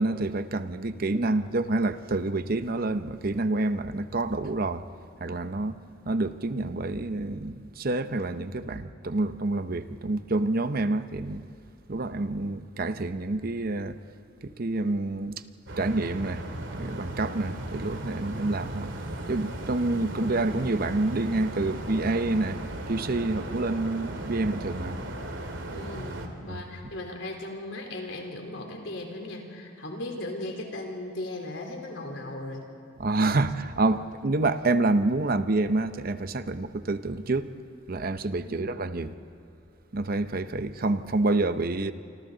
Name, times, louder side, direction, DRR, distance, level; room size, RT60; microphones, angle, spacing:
voice 1, 0.0-4.9 5.2-5.8 6.1-11.4 11.9-14.0 14.4-15.4 15.8-16.4 16.7-19.0 19.3-22.6 22.9-25.0 26.5-26.6 33.0-37.5 37.9-39.1 39.9-41.9, right 2 dB, 50° right, 0.8 m, -28 dB
sound 1, 15.7-26.3, right 1 dB, 85° right, 2.4 m, -36 dB
voice 2, 25.7-32.6 38.5-38.7, left 1 dB, 85° left, 3.8 m, -37 dB
28.0 x 25.5 x 4.0 m
head